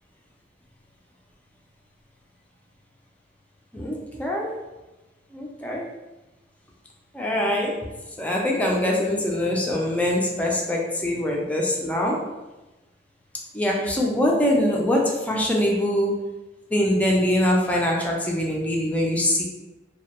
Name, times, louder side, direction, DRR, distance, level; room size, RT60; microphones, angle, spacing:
voice 1, 3.7-4.6 5.3-5.8 7.1-7.8 8.2-12.3 13.5-16.3 16.7-19.4, left 1 dB, 10° left, -2 dB, 0.3 m, -23 dB
2.1 x 2.0 x 2.9 m, 1.1 s
head